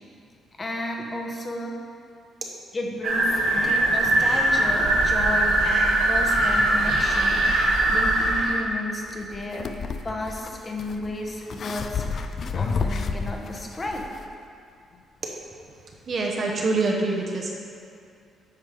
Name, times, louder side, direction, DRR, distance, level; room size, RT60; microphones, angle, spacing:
voice 1, 0.6-1.8 2.7-12.0 12.5-14.0, left 1 dB, 30° left, 1 dB, 1.0 m, -33 dB
sound 1, 3.0-8.6, right 1 dB, 90° right, 1.4 m, -21 dB
sound 2, 9.1-14.3, left 5 dB, 55° left, 0.4 m, -31 dB
voice 2, 16.1-17.6, right 3 dB, 50° right, -1 dB, 0.8 m, -25 dB
9.4 x 3.3 x 4.9 m, 2.4 s
cardioid pair, 90°, 0 cm